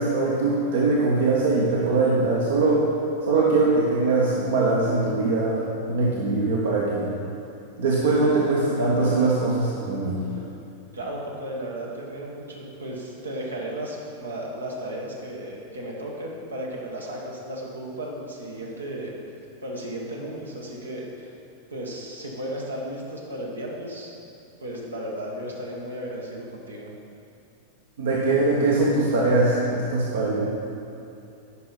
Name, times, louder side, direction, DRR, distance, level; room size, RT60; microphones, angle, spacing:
voice 1, 0.0-2.8 3.2-5.6 5.9-7.1 7.8-10.2 28.0-30.5, right 3 dB, 60° right, -4 dB, 1.0 m, -22 dB
voice 2, 10.9-19.1 19.6-21.3 21.7-24.1 24.6-26.9, right 1 dB, 75° right, -2 dB, 1.3 m, -34 dB
9.8 x 5.8 x 4.1 m, 2.7 s
figure-of-eight pair, 90°, 0 cm